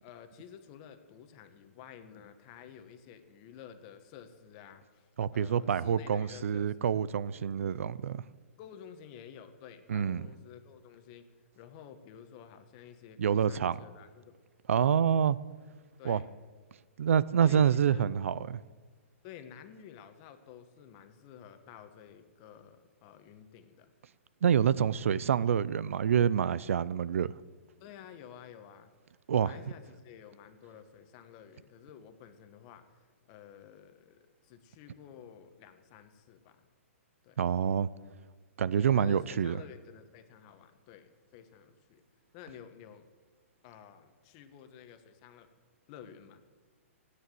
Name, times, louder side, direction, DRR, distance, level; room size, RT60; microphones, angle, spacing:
voice 1, 0.0-7.0 8.6-11.2 11.5-14.4 16.0-16.3 17.4-18.1 19.2-23.9 27.8-28.9 29.4-32.8 33.3-36.6 37.2-37.4 38.7-42.0 42.3-43.1 43.6-45.5 45.9-46.4, left 8 dB, 30° left, 1.2 m, -51 dB
voice 2, 5.2-8.2 9.9-10.3 13.2-13.8 14.7-15.4 16.0-16.2 17.0-18.6 24.4-27.3 29.3-29.5 37.4-37.9 38.6-39.6, right 8 dB, 70° right, 0.6 m, -27 dB
16.0 x 9.7 x 7.7 m
hypercardioid pair, 160°, 7 cm